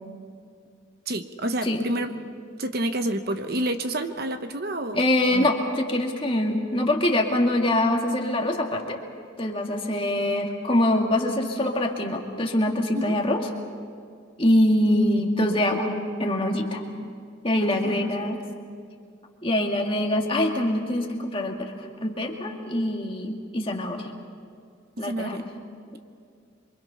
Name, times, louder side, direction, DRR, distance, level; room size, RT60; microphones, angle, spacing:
voice 1, 1.1-2.1 2.6-5.5 12.9-13.2 17.5-18.3 25.0-25.4, right 1 dB, 50° right, 8 dB, 1.0 m, -29 dB
voice 2, 4.9-9.0 9.4-13.4 14.4-15.9 16.2-16.8 17.4-18.4 19.4-24.1 25.0-25.4, left 1 dB, 25° left, 1 dB, 2.1 m, -24 dB
27.5 x 24.0 x 5.7 m, 2.2 s
head